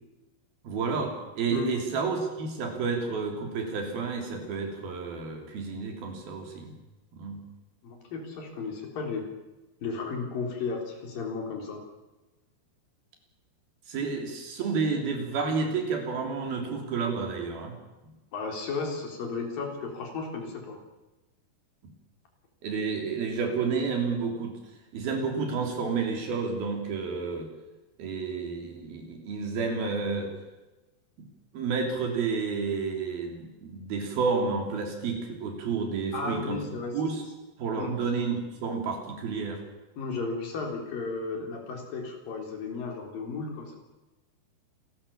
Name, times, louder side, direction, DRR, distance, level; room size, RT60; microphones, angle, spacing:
voice 1, 0.6-6.8 7.1-7.4 13.9-17.8 18.0-18.1 22.6-24.6 24.9-27.5 28.0-30.3 31.2-31.3 31.5-36.6 36.9-37.2 37.6-39.6, right 5 dB, 65° right, 3 dB, 5.1 m, -30 dB
voice 2, 7.8-9.3 9.8-11.8 18.3-20.8 36.1-37.0 37.8-37.9 40.0-43.7, left 4 dB, 60° left, 2 dB, 5.4 m, -34 dB
28.5 x 13.0 x 7.2 m, 1.1 s
omnidirectional pair, 4.7 m